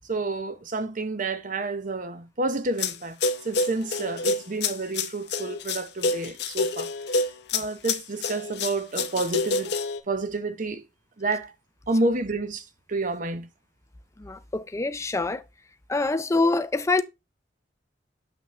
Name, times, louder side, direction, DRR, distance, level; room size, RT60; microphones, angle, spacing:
voice 1, 0.1-3.1 3.4-6.9 7.5-9.7 10.1-10.8 11.2-11.5 11.9-13.5, right 2 dB, 45° right, 0.8 m, -29 dB
sound 1, 2.8-3.0 3.2-10.0, left 3 dB, 65° left, 0.7 m, -27 dB
voice 2, 14.2-15.4 15.9-17.0, left 3 dB, 15° left, 0.4 m, -25 dB
6.9 x 6.1 x 3.2 m
head